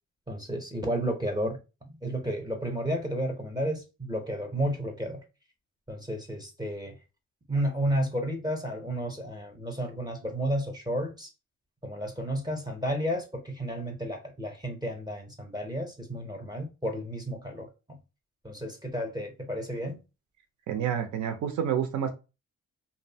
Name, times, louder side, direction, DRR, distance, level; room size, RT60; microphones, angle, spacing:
voice 1, 0.3-1.6 2.0-5.2 5.9-7.0 7.5-11.3 11.8-18.0 18.4-20.0, equal, 15° right, 0.6 m, -32 dB
voice 2, 20.7-22.1, right 9 dB, 70° right, 0.6 m, -28 dB
2.6 x 2.1 x 2.6 m
cardioid pair, 90°, 30 cm